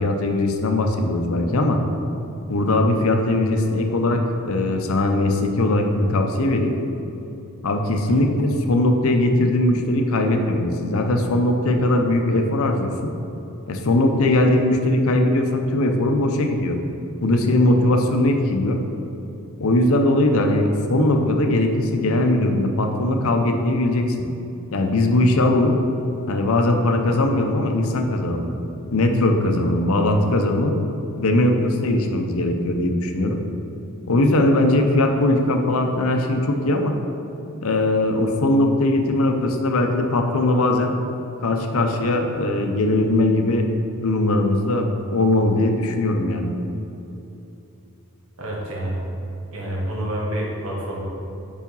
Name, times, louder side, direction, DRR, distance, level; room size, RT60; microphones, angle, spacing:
voice 1, 0.0-1.8 2.5-4.2 4.5-6.8 7.6-13.1 13.7-16.8 17.2-18.8 19.6-24.3 24.7-25.8 26.3-28.5 28.9-30.8 31.2-33.4 34.1-36.9 37.6-41.0 41.4-43.7 44.0-46.5, left 1 dB, 70° left, 4 dB, 0.6 m, -20 dB
voice 2, 48.4-49.2 49.5-51.0, right 1 dB, 70° right, -3 dB, 1.4 m, -28 dB
4.9 x 4.9 x 5.4 m, 2.9 s
head